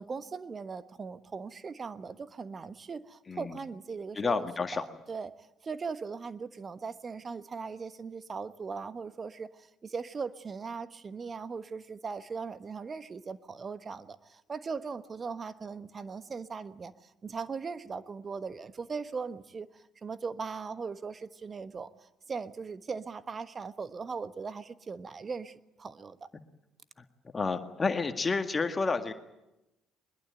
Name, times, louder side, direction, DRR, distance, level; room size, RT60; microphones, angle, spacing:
voice 1, 0.0-4.4 4.7-5.3 5.6-26.3, right 5 dB, 40° right, 13 dB, 1.2 m, -39 dB
voice 2, 3.3-3.6 4.2-4.8 27.3-29.1, left 4 dB, 30° left, 7 dB, 1.8 m, -30 dB
22.0 x 21.5 x 9.1 m, 0.95 s
hypercardioid pair, 50°, 0 cm